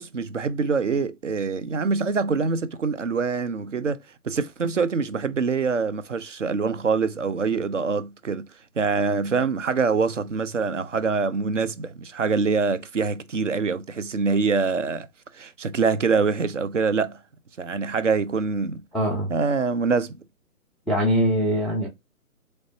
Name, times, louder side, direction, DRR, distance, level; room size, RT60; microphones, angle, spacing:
voice 1, 0.0-4.0 4.2-8.5 8.8-15.1 15.3-17.2 17.6-18.8 19.3-20.2, right 4 dB, 55° right, 0.6 m, -24 dB
voice 2, 18.9-19.3 20.9-21.9, equal, ahead, 0.5 m, -22 dB
3.9 x 3.2 x 2.7 m
hypercardioid pair, 180°, 44 cm